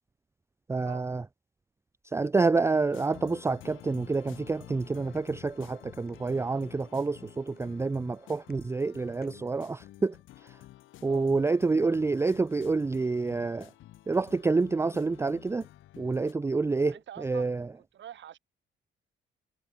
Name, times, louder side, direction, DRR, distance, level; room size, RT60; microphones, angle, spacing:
voice 1, 0.7-1.2 2.1-10.2 10.4-10.5 11.0-13.7 14.1-15.6 16.0-17.7, right 3 dB, 15° right, 0.4 m, -28 dB
sound 1, 2.9-16.3, left 15 dB, 85° left, 2.1 m, -51 dB
sound 2, 4.8-10.1, left 7 dB, 50° left, 7.9 m, -63 dB
voice 2, 16.8-17.5 17.9-18.4, right 10 dB, 65° right, 4.8 m, -46 dB
cardioid pair, 90°, 20 cm